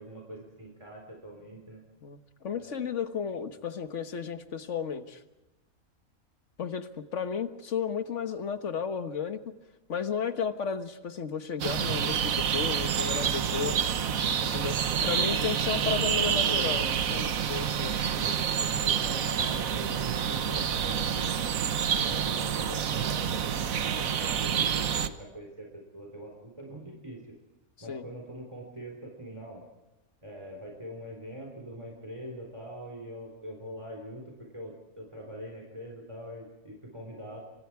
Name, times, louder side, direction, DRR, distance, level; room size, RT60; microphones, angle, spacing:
voice 1, 0.0-1.8 2.5-2.8 14.2-14.5 14.9-17.0 17.7-21.3 21.9-27.2 27.8-29.6 30.2-37.4, right 1 dB, 20° right, 0 dB, 4.1 m, -43 dB
voice 2, 2.4-5.2 6.6-9.5 9.9-13.8 14.4-14.8 15.0-17.9 27.9-28.0, left 6 dB, 55° left, 9 dB, 1.6 m, -33 dB
sound 1, 11.6-25.1, right 8 dB, 65° right, 1.4 m, -28 dB
28.5 x 25.5 x 4.7 m, 0.99 s
omnidirectional pair, 1.5 m